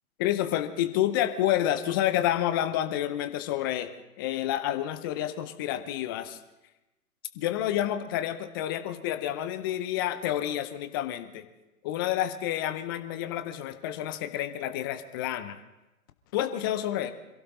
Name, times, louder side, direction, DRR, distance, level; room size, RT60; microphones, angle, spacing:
voice 1, 0.2-3.9 4.2-6.4 7.4-11.4 11.8-15.6 16.3-17.1, left 12 dB, 15° left, 9 dB, 0.6 m, -29 dB
26.5 x 16.0 x 3.1 m, 1.0 s
figure-of-eight pair, 130°, 44 cm